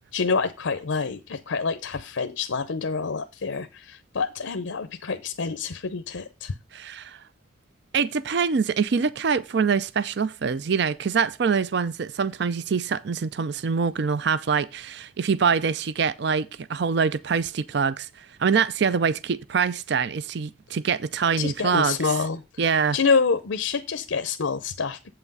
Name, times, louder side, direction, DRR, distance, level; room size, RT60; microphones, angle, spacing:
voice 1, 0.1-6.5 21.4-22.4 22.9-25.1, left 5 dB, 80° left, 0.6 m, -27 dB
voice 2, 6.7-7.2 7.9-22.1 22.6-23.0, right 6 dB, 55° right, 0.4 m, -24 dB
8.1 x 5.8 x 5.3 m
head